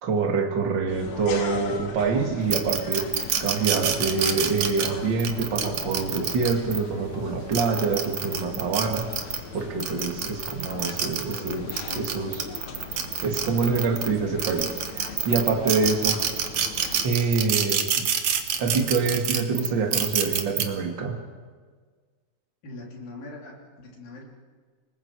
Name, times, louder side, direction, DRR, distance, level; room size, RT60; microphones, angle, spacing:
voice 1, 0.0-12.5 13.2-16.2 17.0-18.1 18.6-21.2, right 4 dB, 40° right, 2 dB, 1.7 m, -26 dB
sound 1, 0.9-17.0, left 6 dB, 70° left, 1.7 m, -39 dB
sound 2, 2.5-6.8 7.4-9.4 9.8-14.1 14.4-20.6, right 9 dB, 80° right, 1.6 m, -26 dB
voice 2, 22.6-24.2, left 2 dB, 50° left, -2 dB, 4.9 m, -41 dB
29.5 x 20.0 x 4.9 m, 1.5 s
omnidirectional pair, 5.4 m